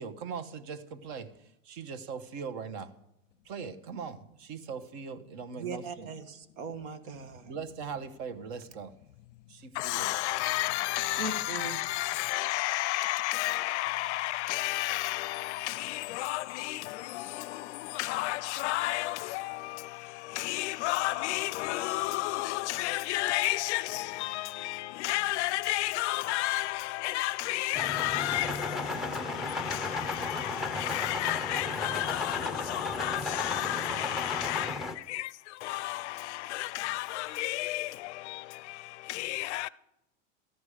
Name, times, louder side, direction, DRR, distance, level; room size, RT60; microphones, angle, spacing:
voice 1, 0.0-2.9 3.4-6.1 7.5-8.9 9.5-10.1, right 5 dB, 50° right, 1.1 m, -40 dB
voice 2, 5.6-7.5 11.2-11.8, right 4 dB, 70° right, 1.5 m, -39 dB
voice 3, 9.7-39.7, left 17 dB, 55° left, 0.5 m, -32 dB
sound 1, 27.7-35.0, left 3 dB, ahead, 0.6 m, -34 dB
14.0 x 10.5 x 4.9 m
hypercardioid pair, 125°, 41 cm